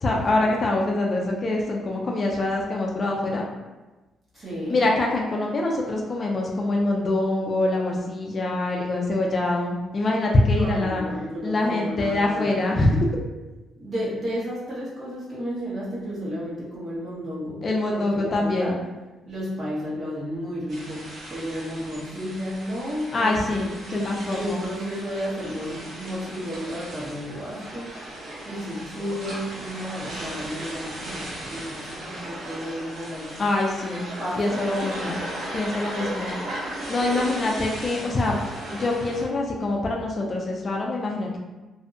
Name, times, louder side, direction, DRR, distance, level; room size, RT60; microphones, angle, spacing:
voice 1, 0.0-3.4 4.7-11.0 11.4-13.1 17.6-18.8 23.1-23.7 23.9-24.6 33.4-34.0 34.4-35.2 35.5-36.3 36.9-38.4 38.7-41.4, left 2 dB, 40° left, -1 dB, 0.4 m, -24 dB
voice 2, 4.3-4.8 10.5-12.8 13.8-17.6 17.9-18.8 19.3-21.0 21.3-33.3 34.2-35.2 36.2-36.4 37.1-37.3, equal, 40° right, -8 dB, 1.1 m, -32 dB
sound 1, 20.7-39.2, right 1 dB, 65° right, 0.9 m, -37 dB
2.6 x 2.1 x 2.5 m, 1.1 s
cardioid pair, 90°, 0 cm